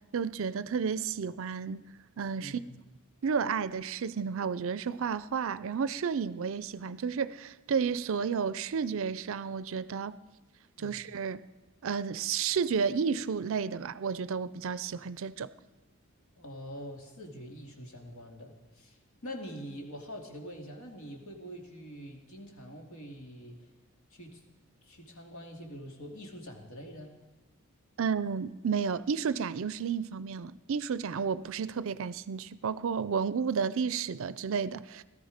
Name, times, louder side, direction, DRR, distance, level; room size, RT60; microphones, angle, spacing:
voice 1, 0.1-1.8 2.2-2.6 3.2-10.1 10.8-11.4 11.8-15.5 28.0-35.0, right 6 dB, 65° right, 0.4 m, -32 dB
voice 2, 2.4-2.8 10.8-11.0 16.4-19.0 19.2-23.7 24.1-24.4 24.8-27.1, equal, 70° left, 2.4 m, -45 dB
17.5 x 13.5 x 5.1 m
head